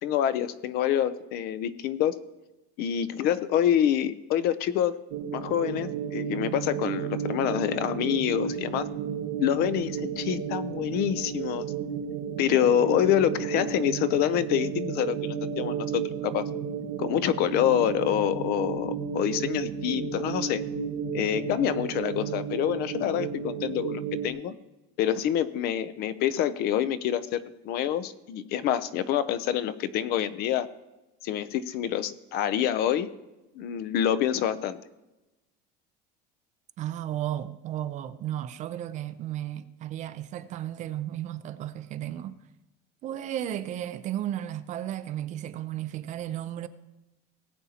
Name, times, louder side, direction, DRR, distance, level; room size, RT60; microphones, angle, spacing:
voice 1, 0.0-2.2 2.8-5.0 5.3-8.8 9.4-11.7 12.4-16.5 17.0-20.6 21.1-24.5 25.0-30.7 31.2-33.1 33.6-34.8, left 10 dB, 50° left, 0.6 m, -26 dB
sound 1, 5.1-24.3, right 7 dB, 85° right, 1.0 m, -33 dB
voice 2, 36.8-42.4 43.0-46.7, right 12 dB, 35° right, 0.5 m, -34 dB
18.5 x 8.4 x 2.8 m
cardioid pair, 160°, 20 cm